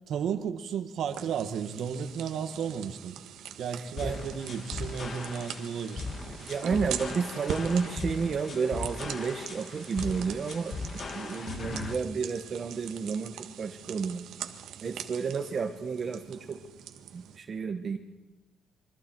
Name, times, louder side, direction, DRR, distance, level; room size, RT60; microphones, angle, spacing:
voice 1, 0.1-3.2 3.6-6.0 11.4-11.5, right 7 dB, 65° right, 1.6 m, -33 dB
sound 1, 1.1-17.4, right 9 dB, 90° right, 1.5 m, -43 dB
sound 2, 4.0-12.0, left 4 dB, 35° left, 1.4 m, -39 dB
voice 2, 6.4-14.2 14.8-16.6 17.1-18.0, right 5 dB, 35° right, 1.1 m, -31 dB
27.0 x 24.0 x 4.6 m
cardioid pair, 165°, 0 cm